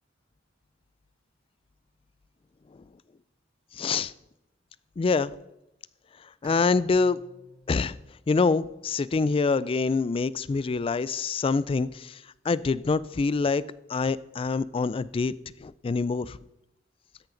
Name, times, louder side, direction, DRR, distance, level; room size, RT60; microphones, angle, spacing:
voice 1, 3.7-4.1 5.0-5.4 6.4-7.2 7.7-8.0 8.3-12.2 12.4-13.6 13.9-15.3 15.6-16.4, left 4 dB, 30° left, 19 dB, 0.3 m, -25 dB
Bowed string instrument, 6.4-9.7, left 1 dB, 20° right, 2.2 m, -54 dB
13.5 x 10.5 x 3.9 m, 0.90 s
head